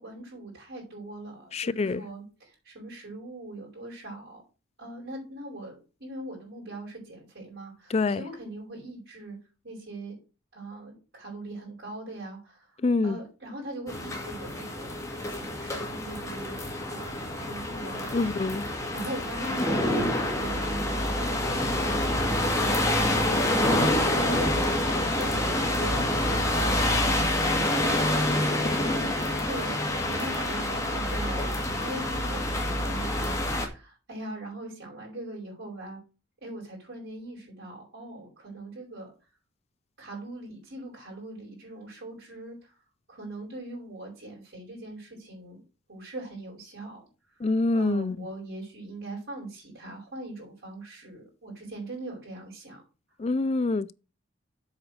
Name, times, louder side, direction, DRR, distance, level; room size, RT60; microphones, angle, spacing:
voice 1, 0.0-4.4 4.8-9.4 9.6-10.2 10.5-15.0 15.3-16.6 16.8-27.6 27.9-31.5 31.8-36.0 36.4-39.1 40.0-42.7 43.1-45.6 45.9-47.0 47.4-52.8, right 1 dB, 60° right, 5.2 m, -41 dB
voice 2, 1.5-2.0 7.9-8.2 12.8-13.2 18.1-18.6 47.4-48.2 53.2-53.9, left 3 dB, 30° left, 0.4 m, -25 dB
rain drops at night, 13.9-33.7, left 1 dB, 15° left, 1.9 m, -27 dB
8.1 x 5.0 x 6.4 m
head